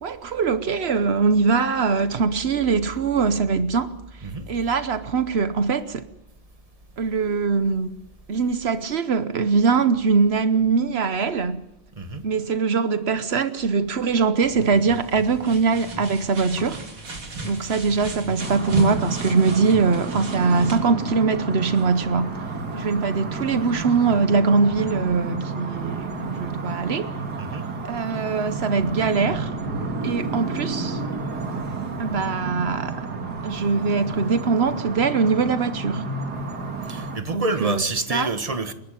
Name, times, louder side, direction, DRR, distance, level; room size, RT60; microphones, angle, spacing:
voice 1, 0.0-4.0 4.5-6.1 7.0-7.9 8.3-11.6 12.2-16.8 17.4-22.3 22.7-27.1 27.9-29.5 30.0-31.0 32.0-33.1 33.4-36.0 37.3-37.8 38.1-38.3, right 4 dB, 85° right, 0.5 m, -22 dB
sound 1, 14.4-20.8, right 1 dB, 65° right, 4.3 m, -35 dB
sound 2, 18.4-37.2, right 3 dB, 50° right, 2.4 m, -31 dB
voice 2, 36.9-38.7, right 3 dB, 20° right, 1.3 m, -27 dB
28.5 x 11.5 x 9.1 m
omnidirectional pair, 2.4 m